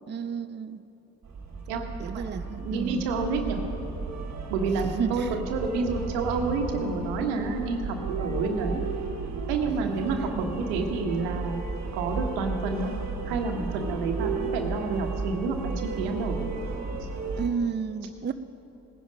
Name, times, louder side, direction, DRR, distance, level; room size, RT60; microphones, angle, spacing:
voice 1, 0.1-0.8 2.0-3.0 4.8-5.4 10.1-10.2 17.4-18.3, right 6 dB, 25° right, 0.5 m, -31 dB
sound 1, 1.2-17.5, right 4 dB, 45° right, 1.7 m, -33 dB
voice 2, 1.7-3.6 4.5-8.8 9.5-11.6 11.9-12.9 13.2-16.5, right 4 dB, 85° right, 1.3 m, -29 dB
18.5 x 10.5 x 5.2 m
hypercardioid pair, 45°, 39 cm